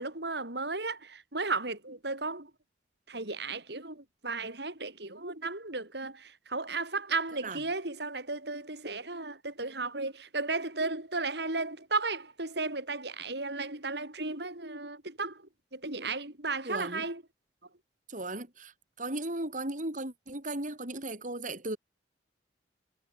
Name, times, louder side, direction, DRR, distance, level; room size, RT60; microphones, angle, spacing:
voice 1, 0.0-2.5 3.1-15.4 15.7-17.2, right 3 dB, 65° right, 6.1 m, -34 dB
voice 2, 16.6-17.0 18.1-21.8, right 2 dB, 45° right, 6.4 m, -36 dB
head